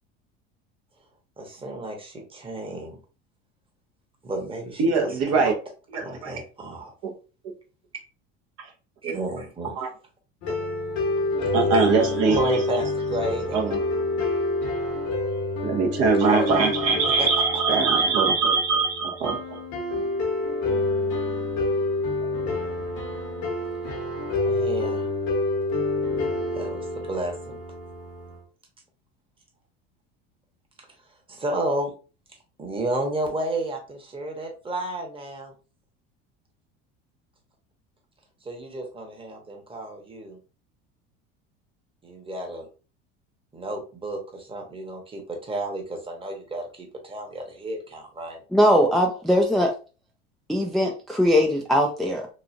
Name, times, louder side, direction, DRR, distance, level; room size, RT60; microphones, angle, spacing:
voice 1, 1.4-3.0 4.2-5.5 5.9-6.9 9.0-9.9 11.4-11.9 12.3-13.6 16.2-16.8 17.2-17.3 24.4-25.1 26.5-27.6 31.3-31.9 32.6-35.5 38.4-40.4 42.0-42.7 43.5-48.4, right 1 dB, 20° right, 2 dB, 1.0 m, -32 dB
voice 2, 4.8-5.5 5.9-6.4 7.0-7.1 9.0-9.2 9.8-9.9 11.5-12.6 13.5-13.8 15.6-19.6 19.9-20.0, right 4 dB, 55° right, 2 dB, 0.8 m, -22 dB
sound 1, 10.4-28.4, left 2 dB, 70° left, 1.1 m, -28 dB
voice 3, 48.5-49.7 50.5-52.3, equal, ahead, 1 dB, 0.4 m, -20 dB
3.0 x 2.4 x 2.5 m, 0.34 s
hypercardioid pair, 85°, 30 cm